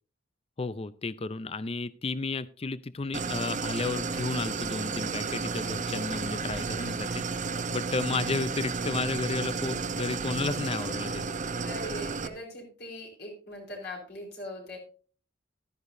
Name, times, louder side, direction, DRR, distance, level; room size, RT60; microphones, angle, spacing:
voice 1, 0.6-11.3, left 3 dB, 30° left, 16 dB, 0.5 m, -33 dB
Idling, 3.1-12.3, right 4 dB, 40° right, 0.8 m, -32 dB
voice 2, 11.6-14.8, left 1 dB, 55° left, 0 dB, 4.5 m, -41 dB
14.5 x 12.5 x 2.7 m, 0.40 s
head